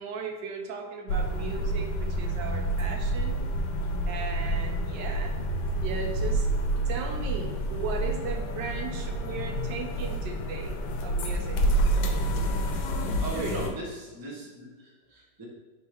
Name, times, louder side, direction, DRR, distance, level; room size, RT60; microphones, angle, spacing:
voice 1, 0.0-3.4 4.1-5.3 5.8-6.5 6.9-11.6 12.9-13.7, right 5 dB, 80° right, 3 dB, 1.3 m, -37 dB
sound 1, 1.1-13.7, right 1 dB, 75° left, 1.1 m, -28 dB
voice 2, 13.2-15.4, right 1 dB, 25° right, -3 dB, 0.5 m, -38 dB
3.6 x 2.9 x 4.7 m, 1.3 s
omnidirectional pair, 1.9 m